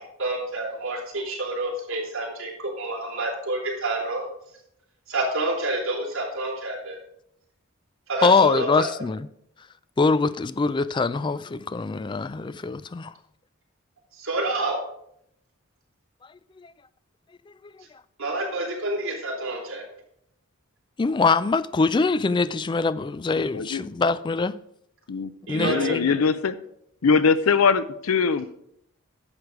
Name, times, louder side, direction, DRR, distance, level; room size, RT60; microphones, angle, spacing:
voice 1, 0.2-4.3 5.1-7.0 8.1-8.9 14.2-14.7 18.2-19.8 25.5-26.1, right 2 dB, 65° right, 3.6 m, -28 dB
voice 2, 8.2-9.3 10.0-13.1 16.6-16.7 21.0-24.6 25.5-26.1, left 4 dB, 20° left, 0.3 m, -23 dB
voice 3, 25.1-26.6 27.0-28.5, left 5 dB, 85° left, 0.6 m, -22 dB
10.5 x 6.7 x 4.8 m
head